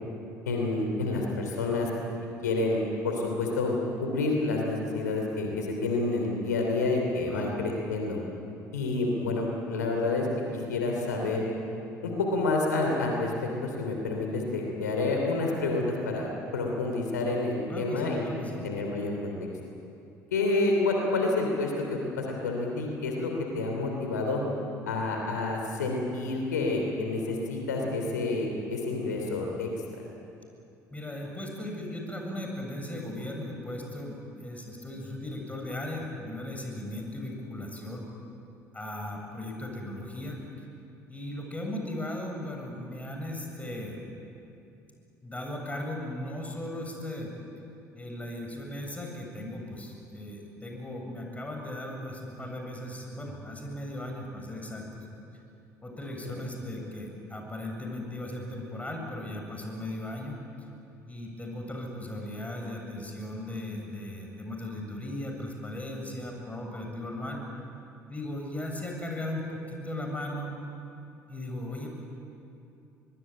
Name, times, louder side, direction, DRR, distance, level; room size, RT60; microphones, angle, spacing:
voice 1, 0.5-1.9 2.4-8.2 8.7-10.3 10.7-11.5 12.0-13.3 13.6-18.3 18.6-19.3 20.3-24.4 24.8-29.7, left 3 dB, 85° left, 1 dB, 3.1 m, -29 dB
voice 2, 17.7-18.6 30.9-38.1 38.7-40.4 41.1-44.2 45.2-47.3 47.9-55.1 55.8-60.4 61.1-67.4 68.1-70.6 71.3-72.0, left 1 dB, 15° left, 1 dB, 7.6 m, -37 dB
23.5 x 23.0 x 8.9 m, 2.7 s
hypercardioid pair, 55°, 9 cm